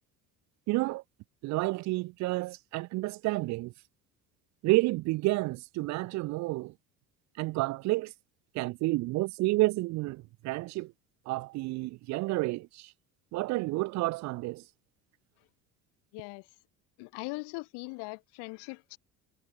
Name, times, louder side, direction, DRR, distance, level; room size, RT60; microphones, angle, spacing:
voice 1, 0.7-1.0 1.4-3.7 4.6-6.7 7.4-8.1 8.5-10.9 11.3-12.9 13.3-14.6, right 20 dB, 35° right, 0.6 m, -30 dB
voice 2, 16.1-16.5 17.0-19.0, left 28 dB, 55° left, 2.5 m, -40 dB
figure-of-eight pair, 65°, 49 cm